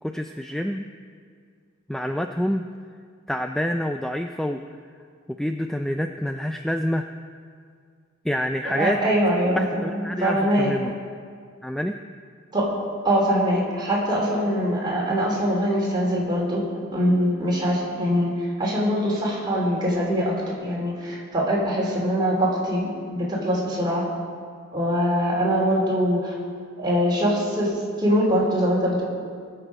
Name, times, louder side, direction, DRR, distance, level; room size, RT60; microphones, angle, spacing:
voice 1, 0.0-0.8 1.9-2.6 3.3-4.6 5.3-7.0 8.2-9.0 9.6-10.9 11.6-12.0, equal, ahead, 5 dB, 0.3 m, -27 dB
voice 2, 8.6-10.8 12.5-12.7 13.0-24.1 24.7-26.4 26.8-29.0, equal, 20° right, -5 dB, 3.2 m, -23 dB
20.0 x 6.9 x 5.0 m, 2.1 s
head